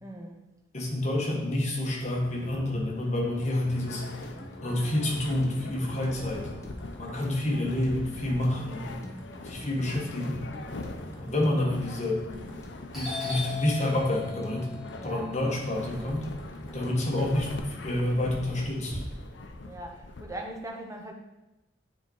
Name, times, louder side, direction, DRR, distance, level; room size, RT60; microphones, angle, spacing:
voice 1, 0.0-0.4 14.9-15.3 19.6-21.1, right 1 dB, 15° right, 2 dB, 0.8 m, -40 dB
voice 2, 0.7-4.0 4.6-6.5 7.0-8.9 9.4-10.4 11.2-12.3 12.9-14.7 15.0-16.2 16.7-19.0, left 1 dB, 35° left, -2 dB, 1.3 m, -28 dB
sound 1, 1.9-20.6, left 2 dB, 75° left, 0.6 m, -43 dB
sound 2, 3.6-17.6, equal, 15° left, 0.6 m, -46 dB
Doorbell, 12.9-17.1 17.4-19.0, left 4 dB, ahead, 1.8 m, -39 dB
8.8 x 3.9 x 3.9 m, 0.99 s
head